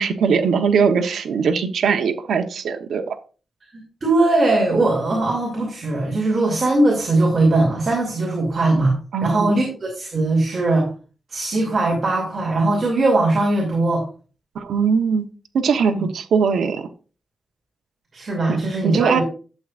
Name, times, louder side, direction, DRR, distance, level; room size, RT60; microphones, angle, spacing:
voice 1, 0.0-3.2 9.1-9.5 14.5-15.3 15.5-16.9 18.5-18.6 18.8-19.2, right 6 dB, 75° right, 5 dB, 0.9 m, -20 dB
voice 2, 4.0-8.9 9.2-10.9 11.3-14.0 15.9-16.0 18.1-19.2, right 2 dB, 35° right, -1 dB, 2.6 m, -20 dB
11.5 x 7.5 x 2.5 m, 0.36 s
wide cardioid pair, 160°, 0 cm